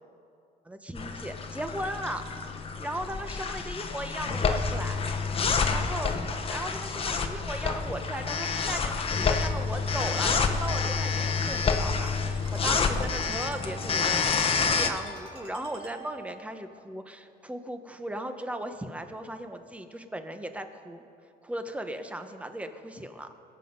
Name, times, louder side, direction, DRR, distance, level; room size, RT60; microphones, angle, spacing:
voice 1, 0.6-2.3 2.8-5.1 5.7-6.1 6.5-21.0 21.4-23.3, right 1 dB, 5° right, 8 dB, 1.0 m, -37 dB
sound 1, 1.0-14.9, left 5 dB, 35° left, 1.0 m, -28 dB
Ringtone, 6.9-16.4, right 3 dB, 40° right, 4.1 m, -48 dB
22.0 x 8.0 x 5.4 m, 2.5 s
cardioid pair, 110°, 17 cm